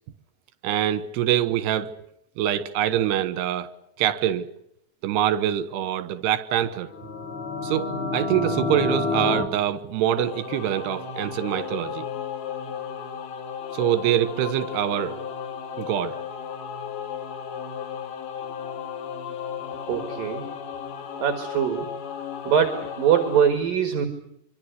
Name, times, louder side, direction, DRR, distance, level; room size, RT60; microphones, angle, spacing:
voice 1, 0.6-1.9 2.4-3.7 4.0-4.5 5.0-6.9 7.6-12.1 13.7-15.2 15.8-16.2, right 11 dB, 80° right, 3.3 m, -24 dB
sound 1, 6.9-9.4, left 3 dB, 70° left, 6.1 m, -27 dB
Singing / Musical instrument, 10.2-23.5, left 7 dB, 90° left, 4.5 m, -35 dB
voice 2, 19.9-20.5 21.2-21.9 22.4-24.1, right 8 dB, 60° right, 3.2 m, -22 dB
25.5 x 24.5 x 8.2 m
omnidirectional pair, 4.9 m